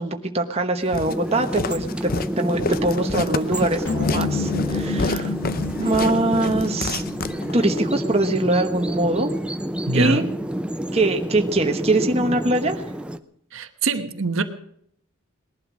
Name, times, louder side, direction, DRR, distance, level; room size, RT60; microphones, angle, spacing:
voice 1, 0.0-5.3 5.8-7.0 7.5-9.3 9.9-10.2 10.9-12.8, right 2 dB, 25° right, 1.2 m, -23 dB
Walk footsteps, 0.9-7.8, left 3 dB, 40° left, 0.6 m, -29 dB
sound 1, 1.1-13.2, equal, 5° right, 0.6 m, -28 dB
sound 2, 3.9-8.2, left 5 dB, 55° left, 1.9 m, -30 dB
voice 2, 9.9-10.3 13.5-14.4, right 3 dB, 60° right, 1.2 m, -23 dB
19.5 x 11.5 x 6.2 m
head